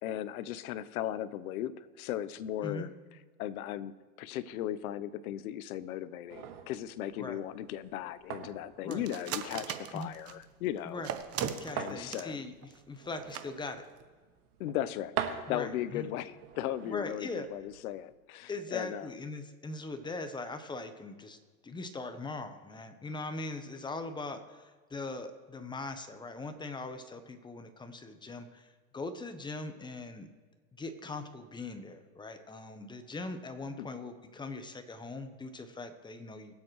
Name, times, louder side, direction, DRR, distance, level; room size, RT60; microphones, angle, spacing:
voice 1, 0.0-2.9 3.4-11.0 11.7-12.4 14.6-15.1 15.5-19.1 33.8-33.9, left 12 dB, 70° left, 15 dB, 0.8 m, -37 dB
sound 1, 6.3-18.1, right 8 dB, 75° right, 1.6 m, -44 dB
sound 2, 8.9-10.4 11.0-12.3 12.6-12.8 13.1-13.2 13.3-13.4 13.8-14.0, right 9 dB, 30° right, 0.9 m, -37 dB
voice 2, 11.6-13.8 15.5-16.1 16.8-17.5 18.5-21.4 21.6-30.3 30.8-36.5, left 3 dB, 10° left, 8 dB, 0.8 m, -41 dB
22.5 x 7.6 x 3.1 m, 1.4 s
supercardioid pair, 120°, 45 cm